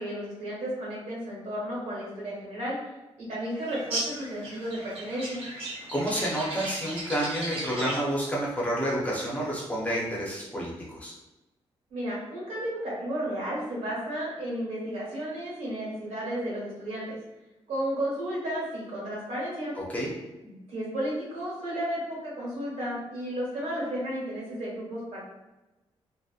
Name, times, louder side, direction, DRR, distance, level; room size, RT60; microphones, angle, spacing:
voice 1, 0.0-2.8 3.2-5.4 11.9-17.2 17.7-19.7 20.4-25.2, equal, 90° right, -6 dB, 1.3 m, -33 dB
sound 1, 3.7-8.2, right 2 dB, 60° right, 0.8 m, -36 dB
voice 2, 5.9-11.1 19.8-20.1, equal, 15° left, -5 dB, 0.5 m, -29 dB
2.7 x 2.1 x 2.3 m, 1.0 s
wide cardioid pair, 180°, 11 cm